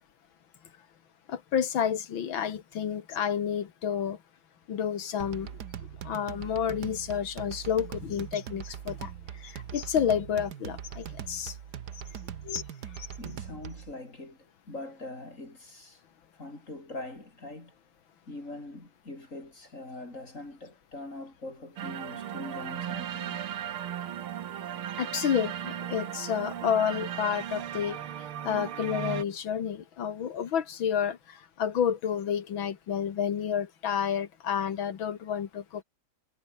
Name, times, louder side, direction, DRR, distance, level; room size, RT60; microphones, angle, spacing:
voice 1, 1.3-4.2 4.7-5.5 6.0-9.1 9.4-11.6 12.4-12.6 13.0-13.1 25.0-28.0 28.4-35.8, left 8 dB, 70° left, 2.2 m, -30 dB
sound 1, 5.2-13.9, right 9 dB, 55° right, 1.6 m, -41 dB
voice 2, 13.2-14.4 14.7-16.0 16.4-17.7 18.3-23.4, left 2 dB, 35° left, 5.7 m, -42 dB
sound 2, 21.8-29.2, right 10 dB, 80° right, 2.2 m, -36 dB
omnidirectional pair, 2.3 m